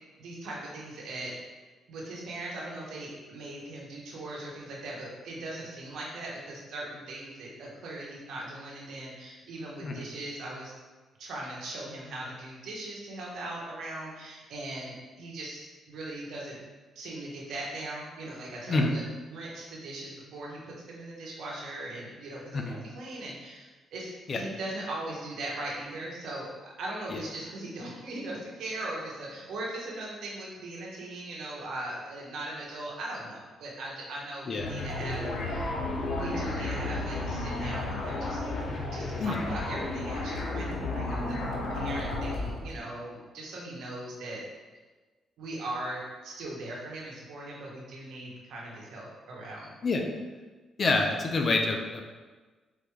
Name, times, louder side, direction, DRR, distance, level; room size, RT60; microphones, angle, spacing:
voice 1, 0.2-1.3 1.9-10.8 11.2-16.6 16.9-19.0 19.3-35.7 36.1-38.5 38.9-41.4 41.7-44.4 45.4-49.7, right 1 dB, 80° right, -3 dB, 1.1 m, -39 dB
sound 1, 34.6-42.8, left 2 dB, 60° left, 0.9 m, -33 dB
voice 2, 50.8-52.1, left 3 dB, 45° left, 3 dB, 0.5 m, -27 dB
3.9 x 3.3 x 3.2 m, 1.3 s
cardioid pair, 95°, 0 cm